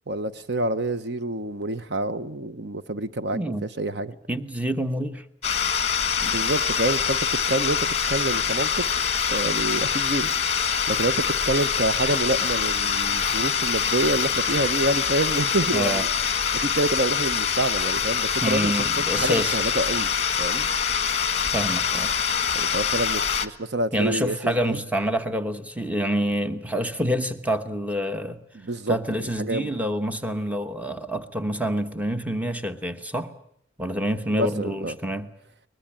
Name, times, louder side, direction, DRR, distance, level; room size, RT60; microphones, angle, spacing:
voice 1, 0.1-4.1 6.2-7.2 7.5-8.8 9.3-16.1 16.5-20.1 20.4-20.7 22.5-24.8 28.6-28.9 29.4-29.8 34.3-35.0, right 2 dB, 60° right, 0.9 m, -27 dB
voice 2, 3.3-3.6 4.3-5.2 15.7-16.0 18.4-19.6 21.5-22.1 23.9-28.4 28.9-33.3 33.8-35.3, equal, 10° right, 1.1 m, -27 dB
sound 1, 5.4-23.5, left 7 dB, 35° left, 1.2 m, -24 dB
sound 2, 9.2-9.7 10.7-11.1 11.5-11.8 12.3-13.0 13.7-14.9 15.2-16.5 17.4-17.8 18.4-18.7 19.2-19.4 19.8-20.6, equal, 25° right, 4.7 m, -46 dB
22.5 x 21.0 x 8.8 m
head